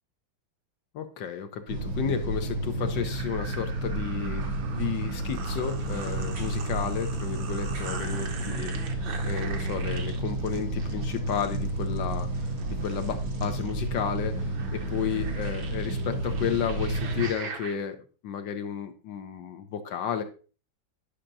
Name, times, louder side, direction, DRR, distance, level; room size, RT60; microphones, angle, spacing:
voice 1, 0.9-9.0 9.2-12.5 12.8-18.0 18.2-20.2, left 8 dB, 70° left, 7 dB, 1.4 m, -32 dB
sound 1, 1.7-17.3, right 2 dB, 90° right, 2.4 m, -31 dB
sound 2, 2.8-17.7, right 4 dB, 70° right, 1.7 m, -41 dB
10.0 x 5.7 x 2.6 m, 0.36 s
omnidirectional pair, 2.2 m